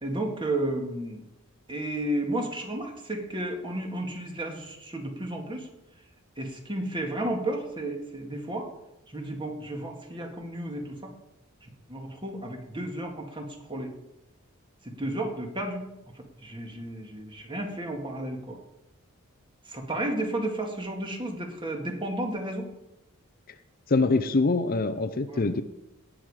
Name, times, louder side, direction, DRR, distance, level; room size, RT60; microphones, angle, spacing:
voice 1, 0.0-1.2 1.7-5.7 6.4-8.7 9.1-11.1 11.9-13.9 14.8-15.8 16.1-18.6 19.7-22.7 25.3-25.5, right 1 dB, 25° right, 2 dB, 2.0 m, -32 dB
voice 2, 23.9-25.6, left 3 dB, 45° left, 11 dB, 0.6 m, -24 dB
18.0 x 7.4 x 5.0 m, 0.91 s
head